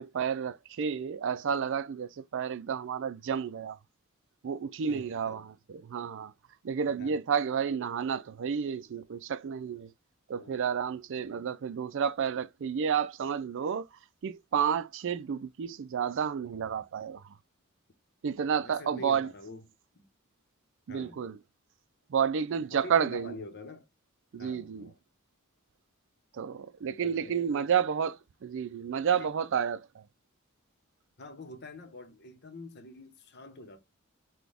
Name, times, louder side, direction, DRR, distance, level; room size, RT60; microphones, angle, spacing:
voice 1, 0.0-3.8 4.4-6.3 6.6-9.9 10.3-17.4 18.2-19.3 20.9-21.4 22.1-23.4 24.3-24.9 26.3-30.0, right 7 dB, 60° right, 0.4 m, -31 dB
voice 2, 4.9-5.5 7.0-7.2 10.3-10.7 11.2-11.5 18.5-19.7 19.9-20.0 20.9-21.2 22.6-23.9 24.4-25.0 26.8-27.7 29.2-29.3 31.2-33.8, left 1 dB, 50° left, 1.0 m, -46 dB
6.0 x 2.3 x 3.4 m
head